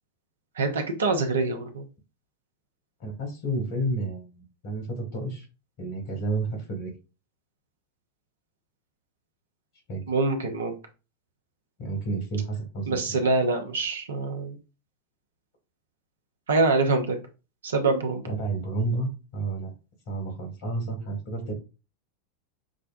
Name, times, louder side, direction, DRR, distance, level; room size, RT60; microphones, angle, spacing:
voice 1, 0.6-1.8 10.1-10.8 12.9-14.6 16.5-17.2 17.6-18.2, right 3 dB, 70° right, 5 dB, 0.8 m, -25 dB
voice 2, 3.0-5.5 5.8-6.9 9.9-10.1 11.8-13.0 18.3-19.7 20.1-21.5, right 2 dB, 50° left, 3 dB, 1.9 m, -31 dB
6.2 x 2.2 x 2.6 m, 0.31 s
figure-of-eight pair, 90°, 0 cm